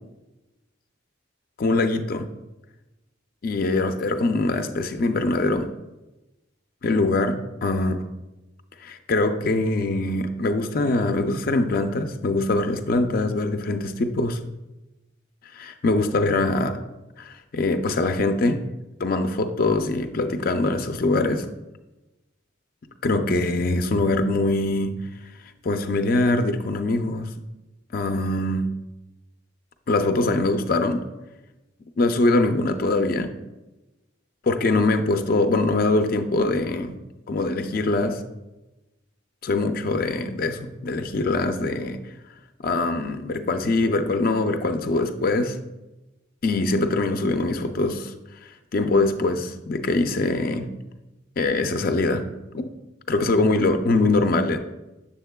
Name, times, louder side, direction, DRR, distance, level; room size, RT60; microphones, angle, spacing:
voice 1, 1.6-2.3 3.4-5.7 6.8-8.0 8.8-14.4 15.5-16.8 17.2-18.6 19.0-21.5 23.0-24.9 25.6-27.3 27.9-28.7 29.9-31.0 32.0-33.3 34.4-36.9 37.3-38.2 39.4-42.0 42.6-45.6 46.4-48.1 48.4-50.7 51.4-52.2 52.5-52.7 53.1-54.6, left 2 dB, 45° left, 7 dB, 0.4 m, -23 dB
7.2 x 7.1 x 2.2 m, 1.0 s
head